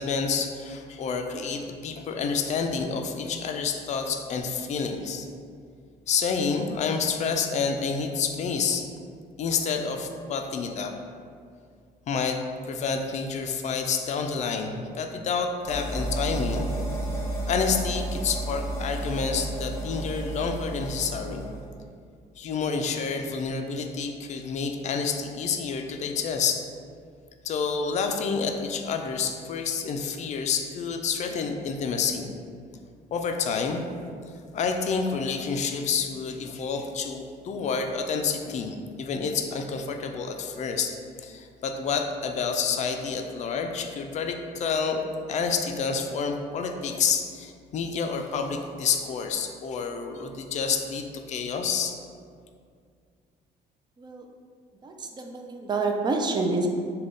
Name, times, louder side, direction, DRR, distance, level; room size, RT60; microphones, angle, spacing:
voice 1, 0.0-5.3 6.1-8.9 9.4-10.9 12.1-12.4 12.7-16.7 17.5-21.5 22.4-26.6 27.4-32.3 33.1-33.8 34.5-45.0 45.3-51.9, left 5 dB, 45° left, 5 dB, 0.4 m, -29 dB
sound 1, 15.7-21.7, right 1 dB, 15° left, 0.8 m, -32 dB
voice 2, 54.8-56.7, right 3 dB, 25° right, 3 dB, 0.4 m, -28 dB
3.4 x 2.2 x 3.8 m, 2.2 s
cardioid pair, 110°, 17 cm